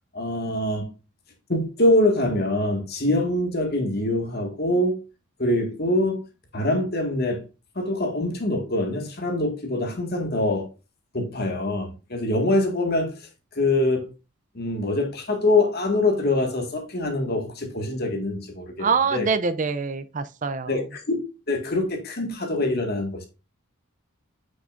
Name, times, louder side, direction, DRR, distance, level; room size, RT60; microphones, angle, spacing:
voice 1, 0.1-0.9 1.5-4.9 5.4-6.2 6.5-7.4 7.7-10.7 11.1-13.1 13.5-14.1 14.5-19.3 20.7-21.2 21.5-23.3, left 1 dB, 50° left, 1.8 m, -24 dB
voice 2, 18.8-20.8, right 5 dB, 35° right, 0.5 m, -25 dB
8.9 x 6.1 x 2.5 m
head